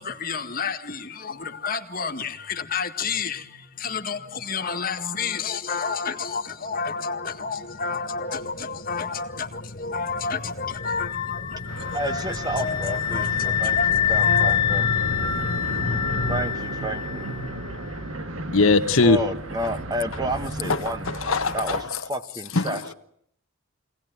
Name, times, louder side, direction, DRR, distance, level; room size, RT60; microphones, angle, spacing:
voice 1, 0.0-14.6, left 5 dB, 45° left, 1.8 m, -30 dB
sound 1, 6.1-16.4, left 2 dB, 60° left, 1.3 m, -34 dB
sound 2, 10.7-17.5, left 10 dB, 20° left, 1.3 m, -26 dB
sound 3, 11.7-21.8, right 2 dB, 75° right, 2.0 m, -35 dB
voice 2, 11.9-14.9 16.3-17.2 19.0-22.9, right 1 dB, 20° right, 1.2 m, -31 dB
voice 3, 18.5-19.2 20.7-20.8 21.1-21.8 22.5-22.9, left 3 dB, 80° left, 1.4 m, -20 dB
24.0 x 18.5 x 9.4 m
head